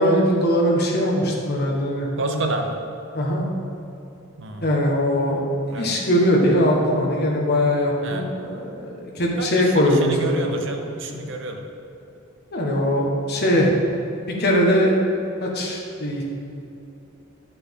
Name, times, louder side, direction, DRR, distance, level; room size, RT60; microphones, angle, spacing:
voice 1, 0.0-2.5 3.1-3.4 4.6-5.4 5.8-10.5 11.1-11.2 12.5-13.7 14.4-15.0 15.4-16.2, equal, 50° left, -1 dB, 1.5 m, -21 dB
voice 2, 2.2-2.8 4.4-4.7 5.7-5.9 8.0-8.2 9.4-11.6, right 2 dB, 60° right, 4 dB, 0.9 m, -29 dB
11.0 x 6.8 x 3.8 m, 2.9 s
head